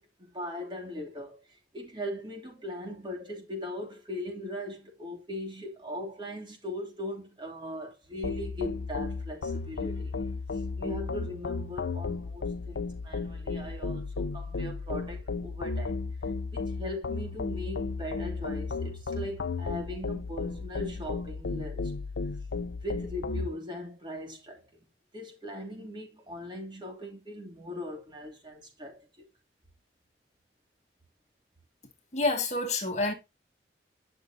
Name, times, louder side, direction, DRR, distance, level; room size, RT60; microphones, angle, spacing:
voice 1, 0.0-10.2 10.5-21.9 22.7-24.8 25.1-29.1, left 1 dB, 25° right, 3.0 m, -39 dB
sound 1, 8.2-23.5, left 4 dB, 85° left, 0.6 m, -34 dB
voice 2, 32.1-33.1, left 2 dB, 40° left, 2.1 m, -28 dB
10.0 x 6.5 x 2.8 m
head